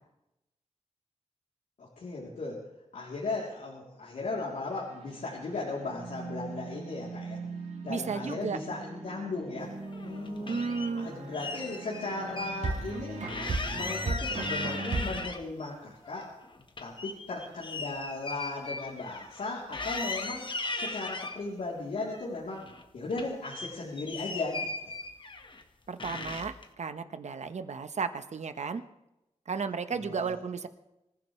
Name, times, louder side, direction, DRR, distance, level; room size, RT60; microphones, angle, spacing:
voice 1, 1.8-2.6 2.9-7.4 7.8-9.7 10.0-10.6 11.0-13.2 13.7-16.3 16.8-20.5 20.8-22.7 22.9-24.7 29.9-30.3, left 3 dB, 90° left, -5 dB, 3.5 m, -36 dB
sound 1, 4.7-15.3, right 3 dB, 85° right, 4.5 m, -38 dB
voice 2, 7.9-8.6 10.5-11.1 25.9-28.8 29.5-30.7, right 5 dB, 70° right, 10 dB, 1.2 m, -34 dB
sound 2, 9.8-10.9 11.3-12.6 12.9-13.0 13.3-15.7 16.0-19.5 19.7-21.4 22.0-22.8 23.1-25.6 26.0-26.7, left 3 dB, 40° left, 1.5 m, -38 dB
25.5 x 15.0 x 3.3 m, 0.91 s
wide cardioid pair, 105°, 12 cm